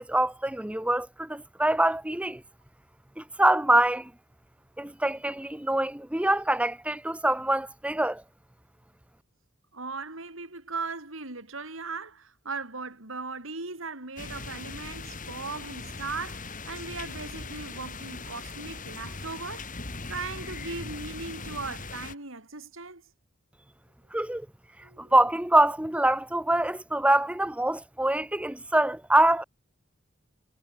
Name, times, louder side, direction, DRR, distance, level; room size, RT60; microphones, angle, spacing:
voice 1, 0.0-2.4 3.2-4.1 4.8-8.2 24.1-24.5 25.0-29.4, right 1 dB, 5° right, 0.8 m, -24 dB
voice 2, 9.7-19.7 20.1-23.0 24.8-25.1, right 4 dB, 75° right, 4.8 m, -38 dB
sound 1, 14.2-22.1, left 3 dB, 40° left, 3.6 m, -40 dB
head